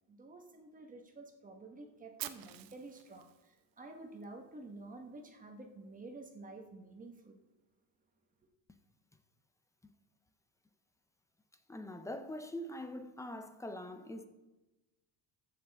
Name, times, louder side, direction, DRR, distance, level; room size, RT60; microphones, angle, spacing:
voice 1, 0.1-7.4, right 2 dB, 20° right, 1.2 m, -50 dB
Fire, 2.2-4.2, right 13 dB, 60° right, 0.8 m, -47 dB
voice 2, 11.7-14.3, left 1 dB, 10° left, 0.5 m, -43 dB
14.5 x 6.8 x 3.5 m
cardioid pair, 150°, 40 cm